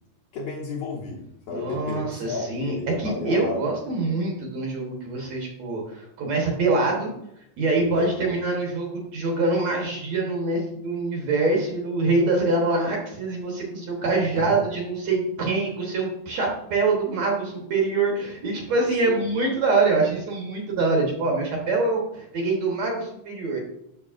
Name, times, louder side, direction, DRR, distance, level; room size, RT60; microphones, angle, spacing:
voice 1, 0.3-3.7 4.0-4.2 7.9-8.4 14.3-14.4 19.1-19.2, left 4 dB, 65° left, -3 dB, 1.8 m, -33 dB
voice 2, 1.5-7.1 7.6-23.6, right 3 dB, 65° right, 0 dB, 2.1 m, -24 dB
6.9 x 6.4 x 2.5 m, 0.80 s
omnidirectional pair, 3.8 m